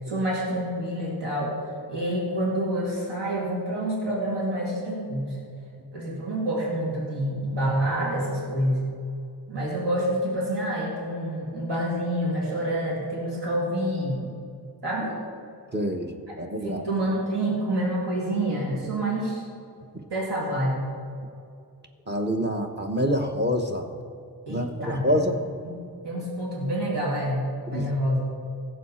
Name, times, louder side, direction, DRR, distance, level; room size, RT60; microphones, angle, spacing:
voice 1, 0.1-1.6 1.9-5.4 5.9-8.9 9.5-14.3 14.8-15.2 16.6-19.4 20.1-20.8 24.5-25.2 26.0-28.2, right 1 dB, 80° right, -5 dB, 2.8 m, -27 dB
voice 2, 15.7-16.9 22.1-23.9 24.5-25.4 27.7-27.9, equal, 25° right, 4 dB, 1.0 m, -26 dB
16.5 x 7.4 x 4.3 m, 2.4 s
wide cardioid pair, 80°, 41 cm